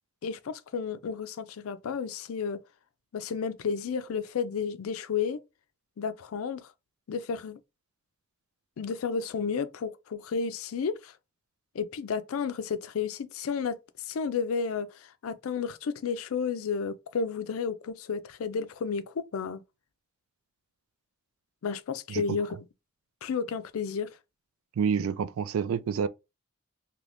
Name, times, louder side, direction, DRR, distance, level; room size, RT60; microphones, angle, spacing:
voice 1, 0.2-2.6 3.1-5.4 6.0-6.7 7.1-7.6 8.8-11.1 11.7-13.8 14.1-19.6 21.6-22.6 23.2-24.1, left 6 dB, 90° left, 0.4 m, -32 dB
voice 2, 24.8-26.1, right 6 dB, 90° right, 0.3 m, -28 dB
2.9 x 2.5 x 3.3 m
head